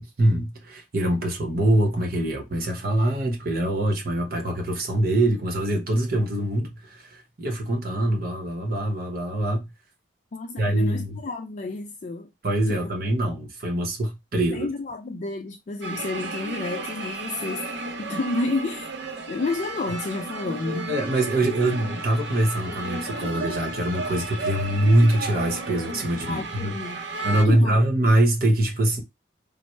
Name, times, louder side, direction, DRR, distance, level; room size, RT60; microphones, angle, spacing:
voice 1, 0.0-9.7 10.6-11.2 12.4-14.7 20.9-29.0, right 1 dB, 55° right, 0.9 m, -24 dB
voice 2, 10.3-12.3 12.7-12.8 14.5-17.7 18.0-18.9 19.3-20.9 26.3-27.0 27.4-27.8, left 3 dB, 40° left, 0.3 m, -30 dB
sound 1, 15.8-27.4, right 2 dB, 70° right, 0.6 m, -33 dB
4.2 x 2.1 x 3.2 m
head